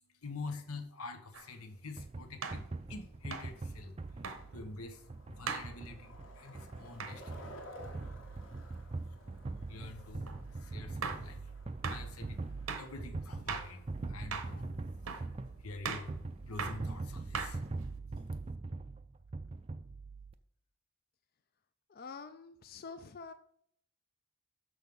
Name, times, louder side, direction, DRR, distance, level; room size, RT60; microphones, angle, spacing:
voice 1, 0.1-7.6 9.0-17.7 18.1-18.2, left 3 dB, 90° left, 1.0 m, -47 dB
sound 1, 1.3-1.5 2.4-2.7 3.3-3.5 4.2-4.4 5.5-5.7 7.0-7.2 10.3-10.4 11.0-11.3 11.8-12.0 12.7-12.9 13.5-13.7 14.3-14.6 15.1-15.3 15.8-16.1 16.6-16.8 17.3-17.8, right 5 dB, 75° right, 0.8 m, -39 dB
Skateboard, 1.7-16.9, equal, 65° left, 1.5 m, -57 dB
sound 2, 2.0-20.3, right 3 dB, 25° right, 0.4 m, -42 dB
voice 2, 21.9-23.3, left 4 dB, 45° left, 0.4 m, -47 dB
6.5 x 6.3 x 5.3 m
head